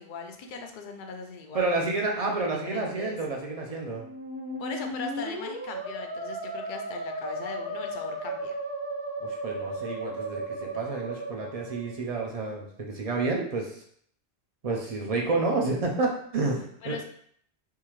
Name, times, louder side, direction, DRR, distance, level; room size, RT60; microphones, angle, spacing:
voice 1, 0.0-1.8 2.4-3.2 4.6-8.6 16.8-17.0, left 3 dB, 55° left, 4 dB, 0.7 m, -39 dB
voice 2, 1.5-4.1 9.2-13.8 14.6-17.0, right 3 dB, 45° right, 0 dB, 0.6 m, -29 dB
Musical instrument, 3.9-12.0, right 1 dB, 65° right, 1.5 m, -35 dB
3.6 x 2.7 x 3.0 m, 0.63 s
omnidirectional pair, 1.1 m